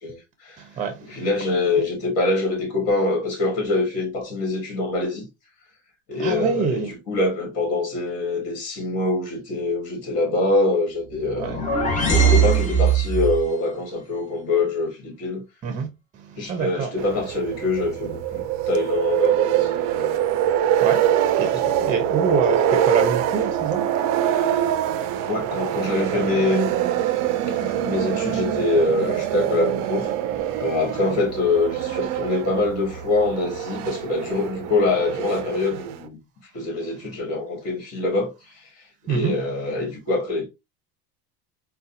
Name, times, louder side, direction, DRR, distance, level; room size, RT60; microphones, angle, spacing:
voice 1, 0.0-0.6 1.1-5.3 6.1-11.6 12.1-15.4 16.4-20.2 21.5-21.8 25.3-26.7 27.6-30.1 30.6-36.2 36.5-38.7 39.1-40.5, left 2 dB, 50° left, 2.0 m, -24 dB
voice 2, 0.6-1.2 6.2-6.9 11.4-11.6 15.6-15.9 16.1-16.9 20.8-22.6 22.9-25.3 27.6-27.9 30.9-31.1 39.1-39.4, right 6 dB, 25° right, 0.7 m, -27 dB
sound 1, 11.1-13.4, right 6 dB, 25° left, 1.1 m, -20 dB
sound 2, 17.0-36.1, right 10 dB, 60° right, 0.5 m, -24 dB
3.9 x 2.3 x 2.6 m
cardioid pair, 135°, 31 cm